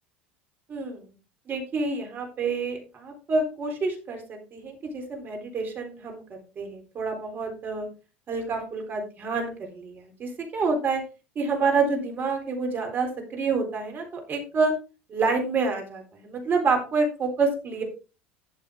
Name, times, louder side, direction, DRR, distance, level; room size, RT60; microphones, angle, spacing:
voice 1, 0.7-1.1 1.5-6.2 6.6-7.9 8.3-11.0 11.4-14.7 15.1-17.8, right 4 dB, 35° right, 3 dB, 4.0 m, -28 dB
12.5 x 6.9 x 3.7 m, 0.31 s
figure-of-eight pair, 70°, 6 cm